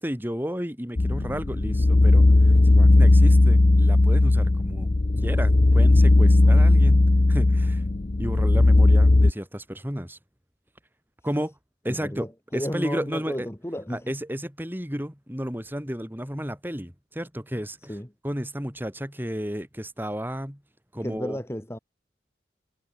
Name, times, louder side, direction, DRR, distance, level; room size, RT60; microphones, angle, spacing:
voice 1, 0.0-4.9 5.2-7.8 8.2-10.2 11.2-11.6 11.8-13.5 13.9-18.0 18.2-20.6 20.9-21.4, equal, 10° right, 5.2 m, -32 dB
sound 1, 1.0-9.3, left 2 dB, 40° left, 0.6 m, -17 dB
voice 2, 11.9-14.1 17.9-18.1 21.0-21.8, equal, 15° left, 1.7 m, -33 dB
head